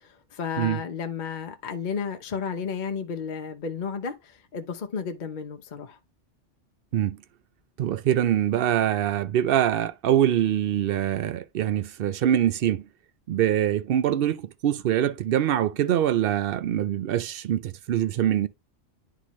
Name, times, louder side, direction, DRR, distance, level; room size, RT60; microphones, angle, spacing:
voice 1, 0.0-6.0, left 6 dB, 45° left, 0.8 m, -33 dB
voice 2, 7.8-12.9 13.3-18.5, right 11 dB, 60° right, 0.7 m, -24 dB
10.0 x 3.8 x 3.1 m
omnidirectional pair, 1.2 m